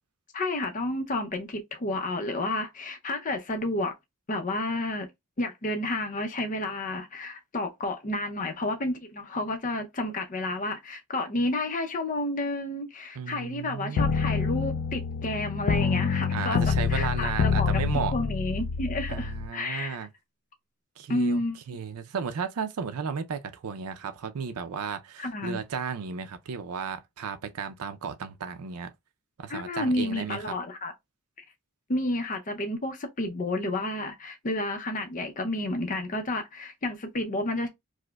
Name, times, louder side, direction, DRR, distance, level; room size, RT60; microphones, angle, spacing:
voice 1, 0.3-3.9 4.3-5.1 5.4-16.6 16.9-17.8 18.1-20.0 21.1-21.6 25.2-25.6 29.5-30.9 31.9-37.7, left 2 dB, 35° left, 0.5 m, -30 dB
voice 2, 13.2-14.2 16.3-18.1 19.1-20.1 21.0-21.4 21.7-28.9 29.4-30.6, right 6 dB, 80° right, 0.5 m, -34 dB
sound 1, 14.0-19.5, left 5 dB, 85° left, 0.4 m, -27 dB
4.8 x 2.1 x 2.2 m
head